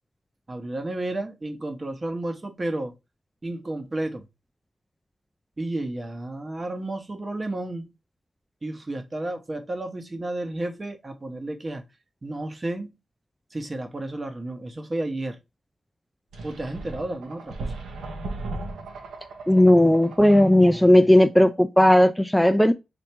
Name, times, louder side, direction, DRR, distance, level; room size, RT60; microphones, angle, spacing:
voice 1, 0.5-2.9 3.4-4.3 5.6-7.9 8.6-11.8 12.2-12.9 13.5-15.4 16.4-17.7, right 2 dB, 35° right, 0.9 m, -32 dB
sound 1, 16.3-20.9, right 2 dB, 90° right, 0.8 m, -37 dB
voice 2, 19.5-22.7, left 1 dB, 5° left, 0.3 m, -16 dB
3.2 x 2.6 x 4.4 m
cardioid pair, 60°, 0 cm